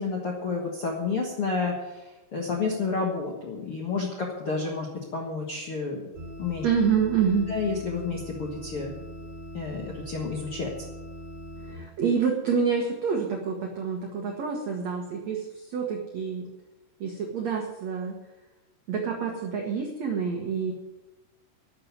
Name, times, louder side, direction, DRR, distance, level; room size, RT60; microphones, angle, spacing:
voice 1, 0.0-2.0 2.3-6.0 6.4-6.6 7.5-8.9 9.5-10.7, left 4 dB, 80° left, -1 dB, 1.2 m, -30 dB
sound 1, 6.1-11.7, equal, 10° right, 4.4 m, -41 dB
voice 2, 6.6-7.5 11.6-16.5 17.0-18.2 18.9-20.7, right 6 dB, 65° right, 1 dB, 1.7 m, -27 dB
12.5 x 6.8 x 9.6 m, 1.1 s
omnidirectional pair, 5.1 m